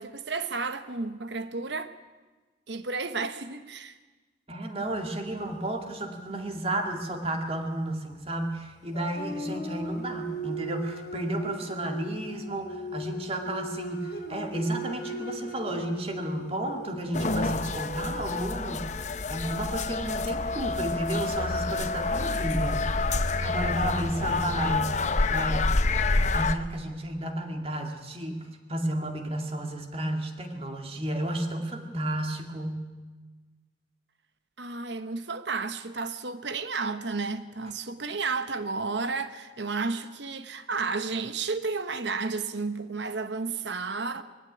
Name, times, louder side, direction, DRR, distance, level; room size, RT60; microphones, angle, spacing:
voice 1, 0.0-1.9 2.7-4.0 34.6-44.2, right 4 dB, 70° right, 1.1 m, -32 dB
voice 2, 4.5-18.9 19.3-22.9 23.4-25.0 25.3-25.7 26.3-32.9, right 1 dB, 30° right, 2.2 m, -32 dB
sound 1, 8.9-18.3, right 1 dB, 60° left, 2.7 m, -38 dB
sound 2, 17.1-26.6, left 3 dB, 40° left, 0.8 m, -28 dB
21.0 x 15.5 x 9.9 m
head